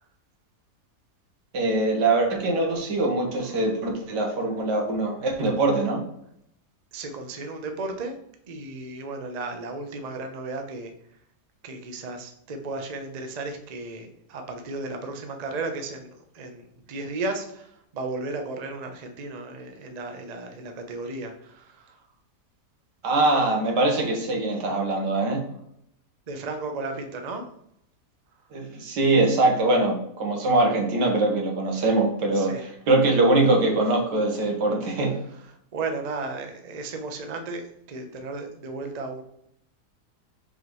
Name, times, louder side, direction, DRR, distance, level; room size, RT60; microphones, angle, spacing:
voice 1, 1.5-6.0 23.0-25.4 28.5-35.1, right 2 dB, 90° right, 2 dB, 1.9 m, -23 dB
voice 2, 6.9-8.2 8.5-10.9 11.6-17.7 17.9-22.0 26.3-27.4 32.4-32.6 35.7-39.2, right 3 dB, 40° right, 5 dB, 0.5 m, -34 dB
6.0 x 5.3 x 3.1 m, 0.74 s
omnidirectional pair, 1.8 m